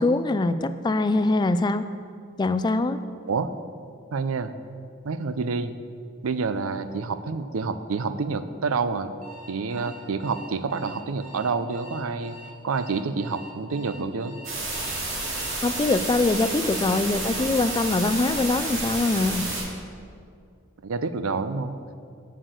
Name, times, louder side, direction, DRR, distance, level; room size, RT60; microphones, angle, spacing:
voice 1, 0.0-1.9 2.4-3.0 15.6-19.5, left 2 dB, 20° left, 12 dB, 0.3 m, -23 dB
voice 2, 4.1-4.5 5.0-5.7 6.2-9.1 9.5-12.4 12.6-14.4 20.8-21.8, right 4 dB, 90° right, 12 dB, 0.5 m, -28 dB
Alarm, 9.2-18.6, left 1 dB, 40° right, 1.8 m, -45 dB
sound 1, 14.4-19.6, right 2 dB, 70° right, 2.4 m, -30 dB
7.7 x 6.5 x 8.0 m, 2.3 s
head